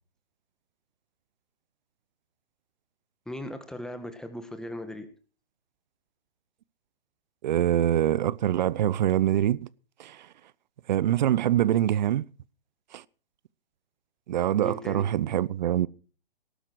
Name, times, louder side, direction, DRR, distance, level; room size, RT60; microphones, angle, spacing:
voice 1, 3.3-5.1 14.6-15.0, left 1 dB, ahead, 1.8 m, -38 dB
voice 2, 7.4-9.7 10.0-10.3 10.9-12.2 12.9-13.0 14.3-15.9, right 11 dB, 50° right, 0.7 m, -24 dB
19.0 x 11.5 x 4.6 m
hypercardioid pair, 130°, 30 cm